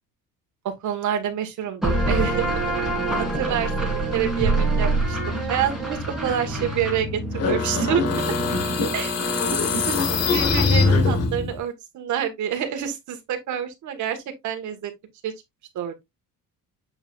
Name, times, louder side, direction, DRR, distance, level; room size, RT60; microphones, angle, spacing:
voice 1, 0.6-2.5 3.2-8.0 8.9-9.4 9.9-10.0 10.3-14.9 15.2-15.3 15.7-16.0, right 9 dB, 55° right, 1.6 m, -28 dB
sound 1, 1.8-9.2, right 2 dB, ahead, 2.5 m, -26 dB
sound 2, 7.3-11.6, left 3 dB, 40° left, 1.4 m, -22 dB
7.8 x 4.9 x 2.4 m
cardioid pair, 170°, 36 cm